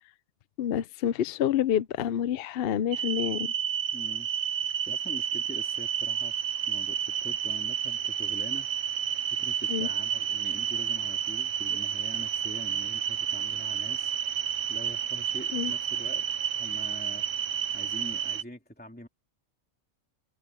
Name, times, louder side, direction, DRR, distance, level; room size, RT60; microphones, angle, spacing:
voice 1, 0.6-3.5 9.7-9.9 15.5-15.7, left 10 dB, 55° left, 0.7 m, -28 dB
sound 1, 2.9-18.4, right 8 dB, 75° right, 1.2 m, -30 dB
voice 2, 3.9-4.3 4.8-9.0 9.3-14.1 14.7-16.3 16.6-17.2 17.7-19.1, equal, 5° left, 2.6 m, -44 dB
omnidirectional pair, 1.3 m